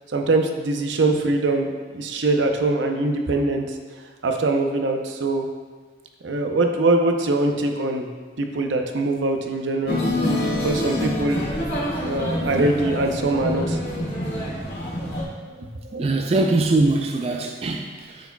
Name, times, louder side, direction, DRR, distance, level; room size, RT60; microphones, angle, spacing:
voice 1, 0.1-3.8 4.2-5.5 6.2-10.0 10.6-11.4 12.0-13.8 15.5-16.0, right 2 dB, 85° right, 4 dB, 0.6 m, -23 dB
sound 1, 9.9-15.2, left 1 dB, 60° left, 1.8 m, -26 dB
voice 2, 16.0-18.3, right 2 dB, 35° right, 4 dB, 0.3 m, -22 dB
10.5 x 4.7 x 2.2 m, 1.4 s
head